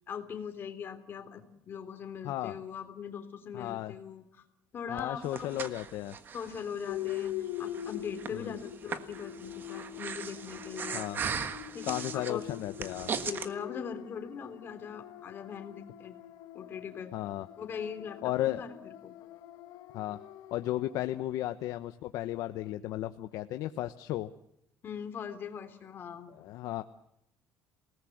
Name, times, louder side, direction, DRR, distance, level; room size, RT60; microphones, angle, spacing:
voice 1, 0.1-4.4 4.7-5.5 6.3-11.0 11.7-12.5 13.3-16.2 16.5-17.1 17.6-19.1 24.8-26.3, left 7 dB, 35° left, 6 dB, 3.4 m, -41 dB
voice 2, 2.2-2.6 3.5-3.9 4.9-6.2 8.3-8.6 10.9-11.2 11.8-13.1 17.1-17.5 18.2-18.7 19.9-20.2 20.5-24.3 26.3-26.8, left 14 dB, 70° left, 9 dB, 1.0 m, -34 dB
Breathing, 5.0-13.5, right 6 dB, 30° right, 1.5 m, -39 dB
sound 1, 6.9-21.1, left 13 dB, 85° left, 1.6 m, -43 dB
28.0 x 19.0 x 7.9 m, 0.80 s
cardioid pair, 170°, 7 cm